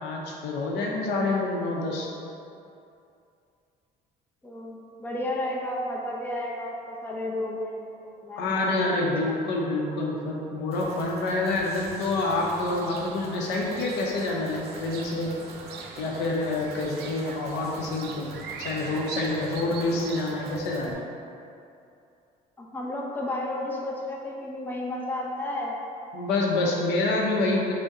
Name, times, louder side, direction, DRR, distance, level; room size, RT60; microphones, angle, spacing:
voice 1, 0.0-2.1 8.4-15.3 16.0-18.3 18.6-21.0 26.1-27.7, left 2 dB, 90° left, -1 dB, 0.7 m, -27 dB
voice 2, 4.4-9.4 22.6-25.7, left 1 dB, 10° left, -3 dB, 0.6 m, -33 dB
sound 1, 10.7-20.9, right 1 dB, 40° right, 0.8 m, -45 dB
sound 2, 12.0-20.6, right 5 dB, 75° right, 0.4 m, -43 dB
5.3 x 2.1 x 3.7 m, 2.6 s
cardioid pair, 110°, 17 cm